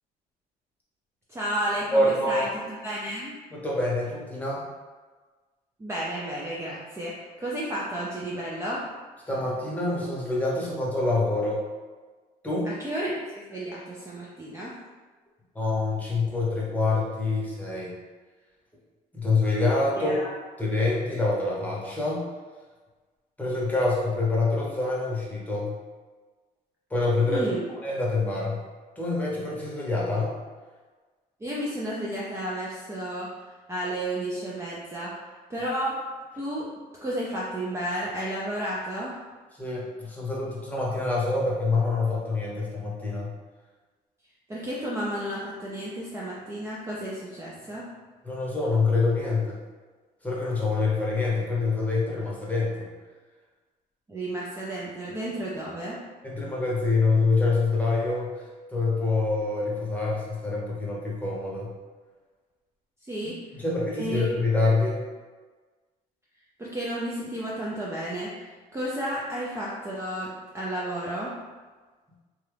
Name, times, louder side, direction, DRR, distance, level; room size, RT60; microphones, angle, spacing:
voice 1, 1.3-3.3 5.8-8.9 12.7-14.8 20.0-20.3 27.3-27.6 31.4-35.2 35.5-36.1 36.3-36.7 37.0-39.2 44.5-47.9 54.1-56.0 63.0-63.6 64.0-64.3 66.6-71.4, right 1 dB, 15° right, -5 dB, 0.4 m, -32 dB
voice 2, 1.9-2.4 3.5-4.7 9.3-11.6 12.4-12.7 15.5-17.9 19.1-20.2 20.6-22.3 23.4-25.8 26.9-27.5 27.8-28.6 29.0-30.3 39.5-43.3 48.2-49.6 50.2-52.9 56.2-61.7 63.6-65.0, left 3 dB, 10° left, -5 dB, 0.9 m, -26 dB
2.9 x 2.3 x 3.3 m, 1.4 s
cardioid pair, 110°, 17 cm